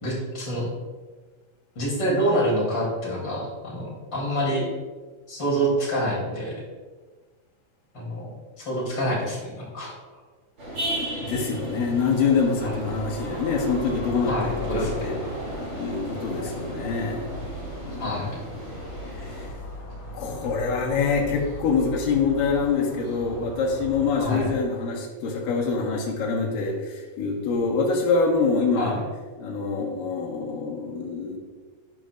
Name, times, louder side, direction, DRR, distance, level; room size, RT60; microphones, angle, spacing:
voice 1, 0.0-0.7 1.8-4.6 5.3-6.6 7.9-8.3 8.6-9.9 12.6-12.7 14.3-14.9 17.9-18.3 24.2-24.5 28.8-29.0, right 1 dB, 35° left, -4 dB, 3.5 m, -26 dB
sound 1, 10.6-19.5, right 1 dB, 35° right, 3.2 m, -34 dB
voice 2, 11.2-15.2 15.8-17.2 17.8-18.2 19.2-19.3 20.1-29.0 29.4-31.4, left 4 dB, 75° left, -1 dB, 3.0 m, -25 dB
sound 2, 12.6-24.6, left 2 dB, 55° left, 4.0 m, -39 dB
11.0 x 10.0 x 2.5 m, 1.4 s
omnidirectional pair, 4.0 m